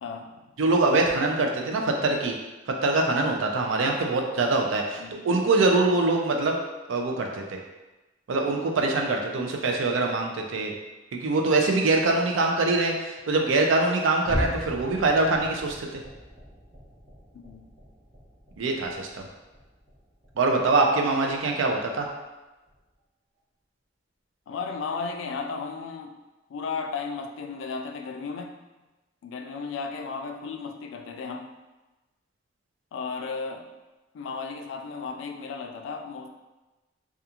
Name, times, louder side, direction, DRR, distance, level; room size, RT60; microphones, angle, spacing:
voice 1, 0.0-0.5 3.8-4.3 5.0-5.3 9.6-9.8 14.3-14.5 17.3-17.7 24.5-26.2 26.5-28.6 29.2-31.5 32.9-33.7 34.1-36.3, left 4 dB, 80° left, 5 dB, 0.3 m, -35 dB
voice 2, 0.6-2.3 2.8-6.6 6.9-7.6 8.3-10.7 11.1-16.0 18.6-19.3 20.4-22.1, right 3 dB, 90° right, 2 dB, 0.4 m, -24 dB
sound 1, 14.2-20.9 21.2-21.5 22.0-22.1 22.7-22.8, equal, 30° right, 0.6 m, -38 dB
2.4 x 2.3 x 2.8 m, 1.1 s
head